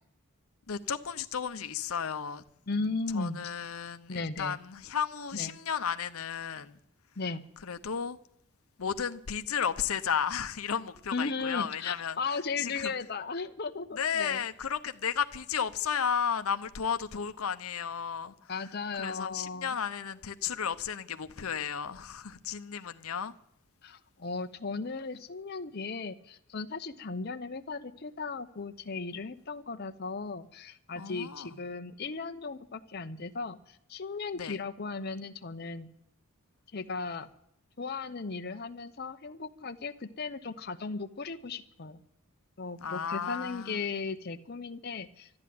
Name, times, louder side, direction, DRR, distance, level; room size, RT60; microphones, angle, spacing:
voice 1, 0.7-2.4 3.1-6.8 7.6-8.2 8.8-12.2 12.6-12.9 13.9-18.5 19.0-23.3 31.0-31.6 34.3-34.6 42.8-43.8, left 7 dB, 85° left, 0.8 m, -33 dB
voice 2, 2.7-3.5 4.1-4.6 5.3-5.5 7.2-7.5 11.1-14.4 18.5-19.7 23.8-35.9 36.7-37.3 37.8-42.0 42.6-45.3, left 4 dB, 45° left, 0.8 m, -36 dB
13.0 x 10.5 x 9.3 m
head